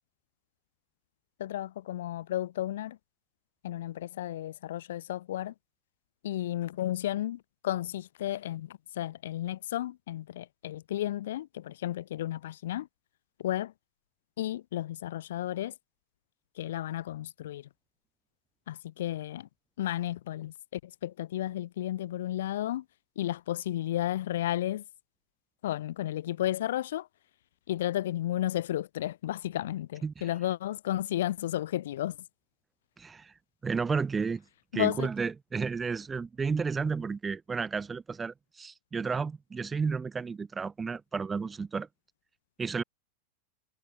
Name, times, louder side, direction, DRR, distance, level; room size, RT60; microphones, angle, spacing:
voice 1, 1.4-3.0 3.6-5.5 6.2-12.9 13.4-13.7 14.4-15.7 16.5-17.7 18.7-19.5 19.8-22.8 23.1-24.8 25.6-27.1 27.7-32.2 34.7-35.1, left 13 dB, 60° left, 1.5 m, -33 dB
voice 2, 33.0-33.3 33.6-34.4 34.7-41.9 42.6-42.8, right 5 dB, 15° right, 2.1 m, -32 dB
figure-of-eight pair, 90°, 0 cm